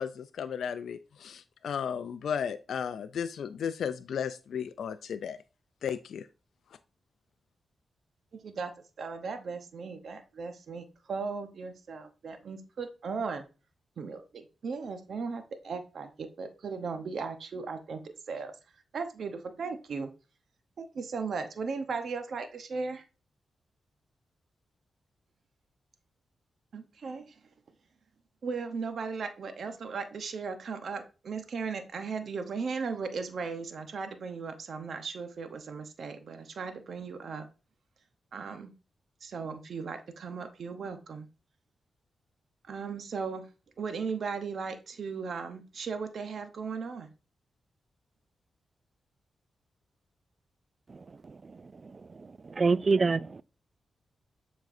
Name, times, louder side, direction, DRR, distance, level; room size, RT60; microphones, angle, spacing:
voice 1, 0.0-5.4 5.8-6.3, left 7 dB, 80° left, 0.3 m, -34 dB
voice 2, 8.3-8.7 9.0-13.4 14.0-18.5 18.9-20.1 20.8-23.0 26.7-27.3 28.4-37.5 38.3-38.7 39.2-41.3 42.7-43.5 43.8-47.1, right 5 dB, 70° right, 0.8 m, -37 dB
voice 3, 52.6-53.4, right 4 dB, 45° right, 0.3 m, -24 dB
7.3 x 5.2 x 2.6 m
supercardioid pair, 50°, 0 cm